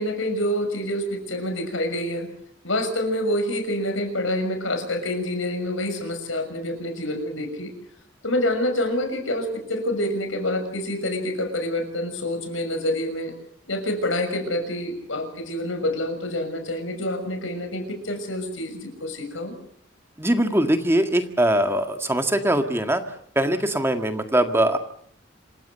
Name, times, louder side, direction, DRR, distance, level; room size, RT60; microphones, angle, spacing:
voice 1, 0.0-2.3 2.6-7.7 8.2-13.3 13.7-19.6, left 1 dB, 80° left, 7 dB, 6.3 m, -27 dB
voice 2, 20.2-23.0 23.4-24.8, right 1 dB, 10° right, 6 dB, 1.8 m, -21 dB
27.5 x 16.0 x 8.0 m, 0.64 s
head